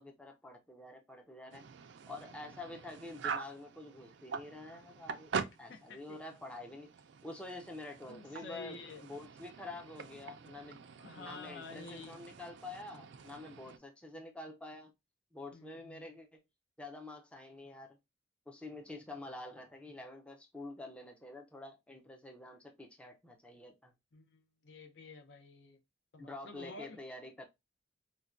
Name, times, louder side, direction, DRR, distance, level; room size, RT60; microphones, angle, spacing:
voice 1, 0.0-1.6 2.1-5.3 5.6-6.9 7.2-10.9 11.2-14.9 15.3-16.4 16.8-18.0 18.5-23.9 26.2-27.5, left 2 dB, 5° left, 0.4 m, -48 dB
sound 1, 1.5-13.8, right 6 dB, 70° right, 0.4 m, -45 dB
voice 2, 5.7-6.2 8.0-9.1 10.8-12.2 15.5-16.0 24.1-25.8 26.1-27.0, left 4 dB, 65° left, 0.6 m, -50 dB
4.5 x 2.2 x 2.4 m
head